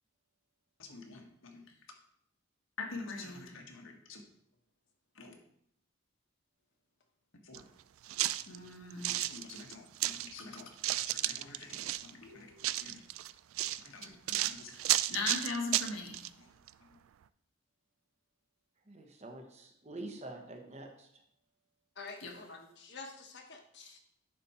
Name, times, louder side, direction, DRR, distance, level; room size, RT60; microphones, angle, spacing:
voice 1, 0.8-1.7 2.8-4.2 5.1-5.3 7.3-7.7 8.5-10.7 11.1-13.0 13.8-16.5 22.2-22.4, left 3 dB, 75° left, 2 dB, 1.4 m, -43 dB
sound 1, 7.5-7.6 8.1-10.3 10.6-12.1 12.6-16.3 16.7-16.8, right 15 dB, 80° right, 0.3 m, -33 dB
voice 2, 18.9-21.2, right 2 dB, 35° right, 3 dB, 1.0 m, -46 dB
voice 3, 22.0-24.0, left 4 dB, 55° left, 4 dB, 1.2 m, -48 dB
10.5 x 4.2 x 4.3 m, 0.71 s
head